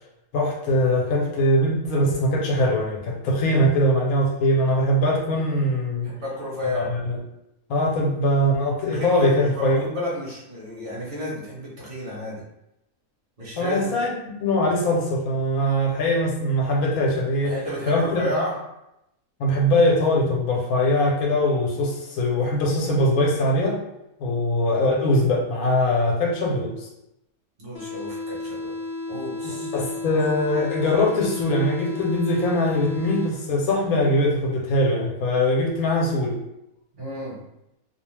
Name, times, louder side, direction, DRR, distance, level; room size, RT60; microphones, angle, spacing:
voice 1, 0.3-6.1 6.7-7.2 7.7-9.8 13.6-17.5 17.9-18.3 19.4-23.8 24.2-26.9 29.4-36.4, left 1 dB, 80° left, -1 dB, 1.1 m, -22 dB
voice 2, 6.0-6.9 8.9-12.4 13.4-14.0 17.4-18.6 24.2-24.4 27.6-28.8 29.1-29.8 36.9-37.4, left 1 dB, 40° right, -6 dB, 1.0 m, -31 dB
sound 1, 27.7-33.7, left 2 dB, 50° left, 0.8 m, -33 dB
2.6 x 2.0 x 3.1 m, 0.86 s
omnidirectional pair, 1.5 m